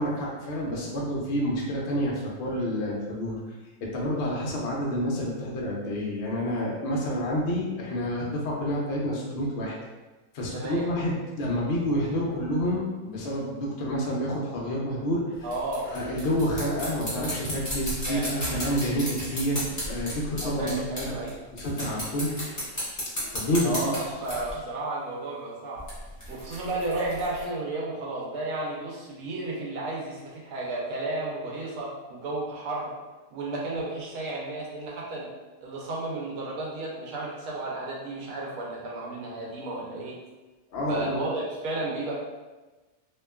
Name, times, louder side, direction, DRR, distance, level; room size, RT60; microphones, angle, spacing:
voice 1, 0.0-3.4 3.9-9.8 10.3-15.3 15.9-21.1 21.5-22.4 23.3-23.9 40.7-41.3, equal, 75° left, -3 dB, 0.5 m, -28 dB
voice 2, 10.5-10.9 15.4-15.9 18.0-18.2 20.4-21.3 23.6-25.8 26.3-32.9 33.3-35.3 35.6-40.2 40.9-42.1, right 2 dB, 70° right, -3 dB, 1.1 m, -33 dB
sound 1, 15.3-21.3 21.6-24.5 25.8-27.4, equal, 20° left, 0.4 m, -34 dB
2.8 x 2.2 x 2.2 m, 1.2 s
omnidirectional pair, 1.8 m